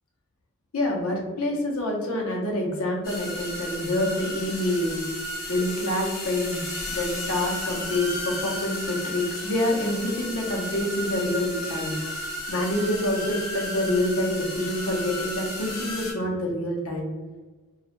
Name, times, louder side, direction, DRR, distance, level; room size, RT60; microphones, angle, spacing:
voice 1, 0.7-5.0 5.5-12.0 12.5-17.1, left 1 dB, 80° left, -1 dB, 0.6 m, -27 dB
sound 1, 3.0-16.1, left 1 dB, 45° left, 0.7 m, -34 dB
2.2 x 2.0 x 2.8 m, 1.3 s
head